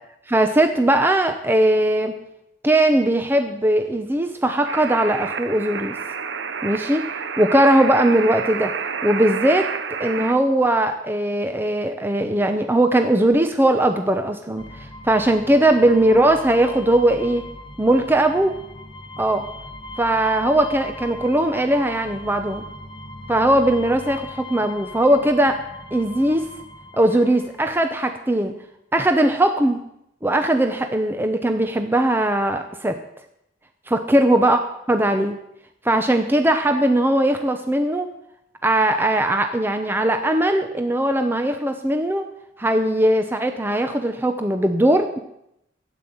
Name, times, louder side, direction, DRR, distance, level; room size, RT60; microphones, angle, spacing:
voice 1, 0.3-2.1 2.6-5.9 6.6-7.0 7.4-8.7 9.0-9.7 10.0-17.5 17.8-18.5 19.2-19.5 20.0-22.7 23.3-25.6 25.9-26.4 27.0-28.5 28.9-29.8 30.2-33.0 33.9-34.6 34.9-35.4 35.8-38.1 38.6-42.3 42.6-45.2, right 1 dB, 10° right, 6 dB, 0.7 m, -19 dB
sound 1, 4.7-10.3, right 6 dB, 70° right, 0.8 m, -29 dB
sound 2, 14.6-28.0, left 2 dB, 30° left, 0.9 m, -39 dB
12.5 x 8.9 x 7.7 m, 0.79 s
head